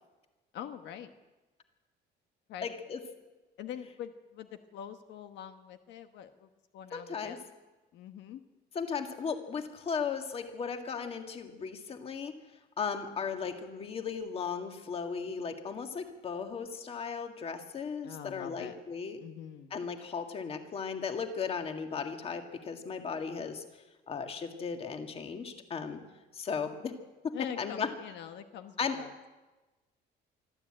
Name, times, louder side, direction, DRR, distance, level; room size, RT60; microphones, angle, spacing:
voice 1, 0.5-1.1 2.5-2.7 3.6-7.4 7.9-8.4 18.0-18.8 19.2-19.7 27.3-29.3, left 9 dB, 75° left, 8 dB, 1.3 m, -44 dB
voice 2, 2.6-3.0 6.9-7.4 8.8-12.3 12.8-19.2 19.7-23.6 24.1-26.0 26.3-26.9 27.2-27.9 28.8-29.0, left 6 dB, 30° left, 6 dB, 1.9 m, -36 dB
25.0 x 12.5 x 8.8 m, 1.2 s
cardioid pair, 165°, 19 cm